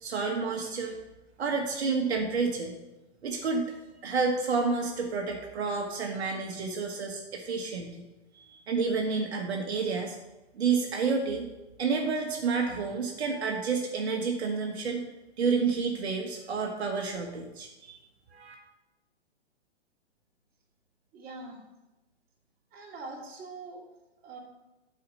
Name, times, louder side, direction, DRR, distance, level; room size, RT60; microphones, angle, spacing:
voice 1, 0.0-1.0 1.4-2.8 3.2-3.7 4.0-8.1 8.3-10.2 10.5-11.5 11.8-15.0 15.4-18.0 18.3-18.5, right 4 dB, 70° right, 1 dB, 1.4 m, -30 dB
voice 2, 21.1-21.6 22.7-23.8 24.2-24.4, right 3 dB, 25° right, -3 dB, 2.6 m, -43 dB
8.6 x 4.9 x 6.4 m, 1.0 s
hypercardioid pair, 120°, 33 cm